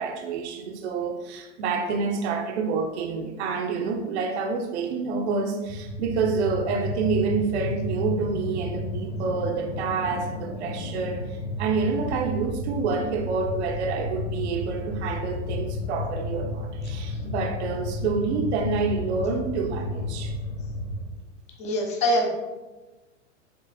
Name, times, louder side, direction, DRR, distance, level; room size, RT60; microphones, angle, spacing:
voice 1, 0.0-20.4, right 5 dB, 60° right, 3 dB, 0.9 m, -28 dB
sound 1, 5.6-21.1, left 2 dB, 75° left, 1.6 m, -32 dB
voice 2, 21.6-22.3, left 1 dB, 20° left, 1 dB, 0.8 m, -23 dB
7.6 x 3.2 x 4.1 m, 1.2 s
supercardioid pair, 155°, 37 cm